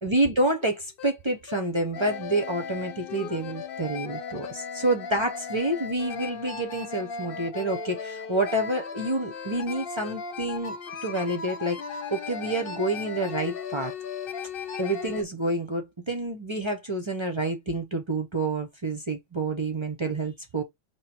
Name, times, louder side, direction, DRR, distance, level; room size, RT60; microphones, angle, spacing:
voice 1, 0.0-10.8 11.0-13.9 14.8-20.6, right 2 dB, 35° right, 0.5 m, -28 dB
sound 1, 0.6-0.7 1.0-1.1 1.5-1.6 1.9-15.2, left 6 dB, 55° left, 0.7 m, -37 dB
4.9 x 3.0 x 2.9 m
omnidirectional pair, 1.4 m